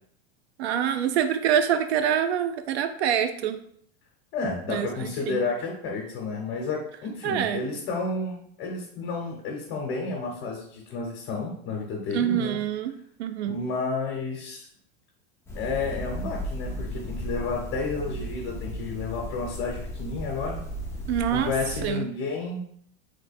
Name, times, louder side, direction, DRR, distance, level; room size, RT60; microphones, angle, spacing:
voice 1, 0.6-3.6 4.7-5.4 7.2-7.6 12.1-13.6 21.1-21.5 21.8-22.1, right 9 dB, 90° right, 9 dB, 0.5 m, -26 dB
voice 2, 4.3-12.6 13.4-14.7 15.5-20.6 21.3-22.6, left 4 dB, 40° left, -2 dB, 0.9 m, -31 dB
sound 1, 15.5-21.9, equal, 10° left, 0.4 m, -35 dB
3.2 x 2.1 x 4.1 m, 0.67 s
supercardioid pair, 135°, 32 cm